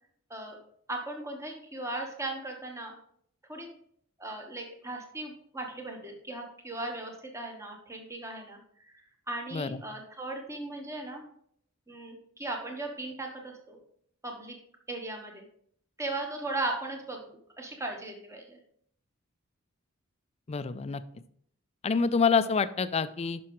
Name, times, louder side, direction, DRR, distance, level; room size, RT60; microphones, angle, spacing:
voice 1, 0.9-3.0 3.5-3.7 4.2-9.0 9.3-11.2 11.9-13.8 14.2-14.5 14.9-15.4 16.0-18.6, right 2 dB, 15° right, 2 dB, 1.2 m, -37 dB
voice 2, 20.5-21.0 21.8-23.4, left 5 dB, 30° left, 13 dB, 0.4 m, -27 dB
10.0 x 6.1 x 3.1 m, 0.65 s
head